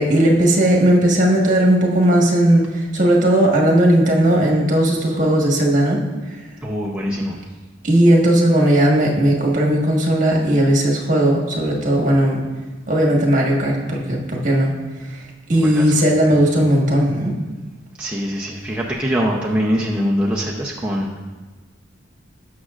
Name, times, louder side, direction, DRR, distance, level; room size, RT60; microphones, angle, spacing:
voice 1, 0.0-6.0 7.8-12.5 12.9-14.7 15.5-17.3, right 1 dB, 40° right, -1 dB, 1.5 m, -16 dB
voice 2, 6.6-7.4 15.6-16.0 16.3-16.4 18.0-21.2, equal, 5° right, -4 dB, 0.6 m, -23 dB
17.5 x 6.3 x 2.5 m, 1.3 s
head